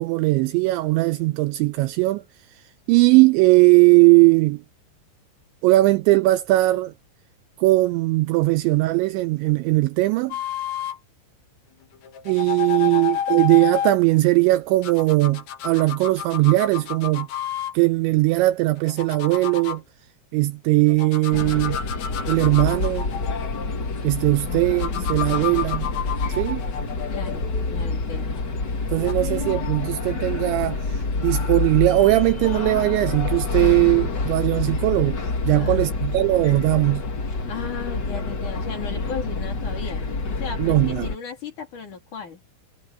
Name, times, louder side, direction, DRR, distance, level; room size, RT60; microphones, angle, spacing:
voice 1, 0.0-2.2 2.9-4.6 5.6-6.9 7.6-10.4 12.3-17.3 17.7-19.8 20.3-21.8 22.3-23.1 24.0-25.9 26.4-26.6 28.9-37.0 40.6-41.1, right 20 dB, 85° right, 2.7 m, -19 dB
sound 1, 10.3-11.0 12.0-14.0 14.8-17.8 18.7-19.8 20.9-24.0 24.8-28.1 28.9-29.1, left 9 dB, 65° left, 5.0 m, -31 dB
voice 2, 12.7-13.1 27.1-28.4 35.5-36.0 37.5-42.4, left 6 dB, 45° left, 4.3 m, -36 dB
sound 2, 21.3-41.1, left 3 dB, 85° left, 0.9 m, -27 dB
omnidirectional pair, 5.7 m